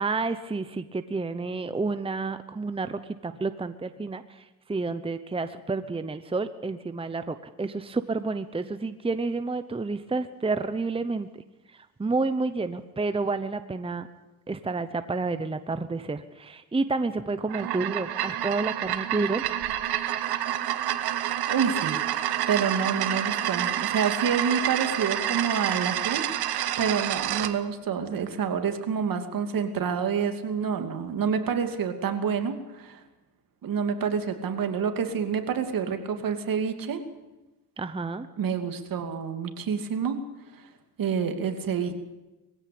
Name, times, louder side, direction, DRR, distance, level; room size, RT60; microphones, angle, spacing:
voice 1, 0.0-11.4 11.7-14.1 14.5-19.4 37.8-38.3, right 3 dB, 15° right, 11 dB, 0.9 m, -30 dB
sound 1, 17.4-27.5, right 12 dB, 85° right, 1.5 m, -28 dB
voice 2, 20.9-22.0 22.5-33.0 33.6-37.0 38.4-40.2 40.5-40.7 41.0-42.0, right 6 dB, 60° right, 7 dB, 2.6 m, -28 dB
21.5 x 16.0 x 8.6 m, 1.1 s
cardioid pair, 110°, 38 cm